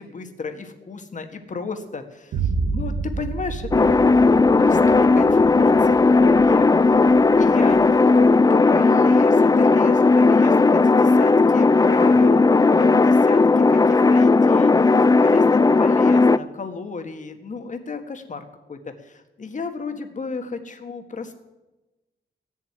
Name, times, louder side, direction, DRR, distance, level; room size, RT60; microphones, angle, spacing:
voice 1, 0.0-4.0 4.5-6.7 7.3-12.4 12.8-21.3, left 4 dB, 40° left, 6 dB, 1.7 m, -33 dB
Boom, 2.3-10.2, right 4 dB, 90° right, 0.9 m, -31 dB
sound 1, 3.7-16.4, left 3 dB, 20° left, 0.4 m, -16 dB
15.5 x 7.6 x 9.5 m, 1.1 s
wide cardioid pair, 135°, 20 cm